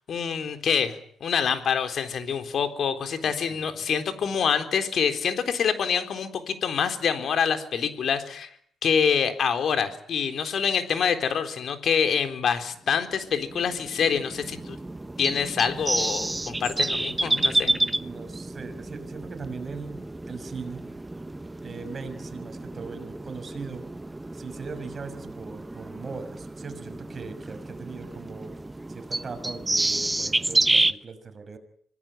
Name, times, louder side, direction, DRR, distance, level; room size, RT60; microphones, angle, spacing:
voice 1, 0.1-8.5 8.8-14.8 15.2-17.7, left 7 dB, 60° left, 8 dB, 3.8 m, -26 dB
voice 2, 3.2-3.8 16.0-16.3 17.6-20.8 21.6-23.8 24.3-28.5 28.9-31.6, right 4 dB, 40° right, 7 dB, 6.1 m, -40 dB
sound 1, 13.1-30.9, right 2 dB, 15° right, 1.1 m, -30 dB
26.0 x 19.0 x 9.2 m, 0.64 s
cardioid pair, 90°, 0 cm